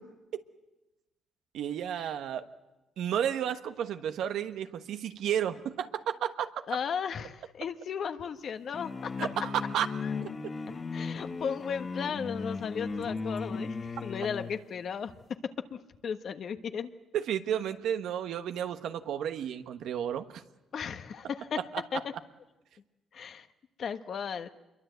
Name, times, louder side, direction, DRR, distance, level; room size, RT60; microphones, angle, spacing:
voice 1, 1.5-2.4 3.0-6.5 9.2-9.9 17.1-20.4, right 9 dB, 80° right, 8 dB, 1.2 m, -32 dB
voice 2, 6.7-9.1 10.0-10.1 10.9-15.1 15.4-16.9 20.7-21.6 21.9-22.0 23.1-23.5 23.8-24.5, left 7 dB, 60° left, 8 dB, 1.3 m, -35 dB
sound 1, 8.7-14.6, left 4 dB, 35° left, 1.6 m, -36 dB
26.5 x 22.5 x 8.1 m, 1.0 s
cardioid pair, 90°, 0 cm